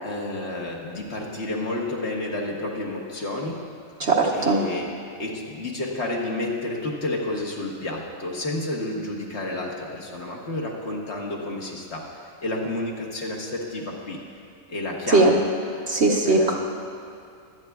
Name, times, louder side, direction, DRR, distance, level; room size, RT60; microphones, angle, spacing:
voice 1, 0.0-3.7 4.3-4.9 5.2-14.2 14.7-15.4 16.3-16.6, left 2 dB, 55° left, -2 dB, 1.6 m, -30 dB
voice 2, 4.0-4.6 15.1-15.3 15.9-16.6, right 3 dB, 55° right, -1 dB, 1.2 m, -19 dB
22.5 x 8.9 x 2.4 m, 2.5 s
omnidirectional pair, 1.4 m